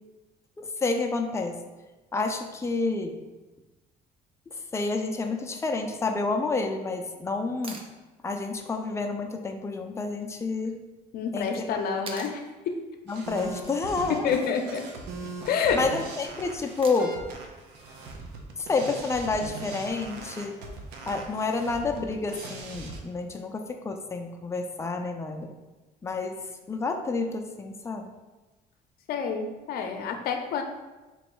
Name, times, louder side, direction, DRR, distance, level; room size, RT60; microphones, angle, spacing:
voice 1, 0.6-1.6 2.1-3.2 4.5-7.8 8.2-10.8 11.3-11.8 13.1-14.3 15.7-17.2 18.6-20.6 21.1-25.5 26.0-28.1, left 3 dB, 15° left, 4 dB, 0.4 m, -29 dB
sound 1, 7.6-7.9 10.2-10.3 12.1-12.4 14.4-14.8 16.8-17.3 19.4-19.5, right 3 dB, 35° right, 0.6 m, -42 dB
voice 2, 11.1-12.7 14.2-14.9 15.5-15.8 29.1-30.6, left 6 dB, 65° left, 5 dB, 0.6 m, -28 dB
sound 2, 13.1-23.0, right 3 dB, 90° right, 0.6 m, -40 dB
3.1 x 3.1 x 4.6 m, 1.2 s
cardioid pair, 110°, 17 cm